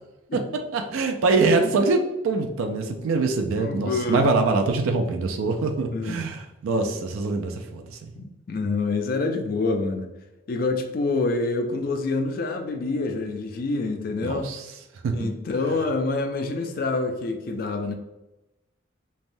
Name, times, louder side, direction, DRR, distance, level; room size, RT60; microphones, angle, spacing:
voice 1, 0.7-8.1 14.2-14.6 15.0-15.3, right 3 dB, 90° right, 4 dB, 0.4 m, -24 dB
voice 2, 3.6-4.3 5.9-6.2 8.1-10.1 10.5-14.5 15.1-17.9, left 3 dB, 45° left, 6 dB, 0.3 m, -27 dB
3.2 x 2.1 x 2.5 m, 1.0 s
head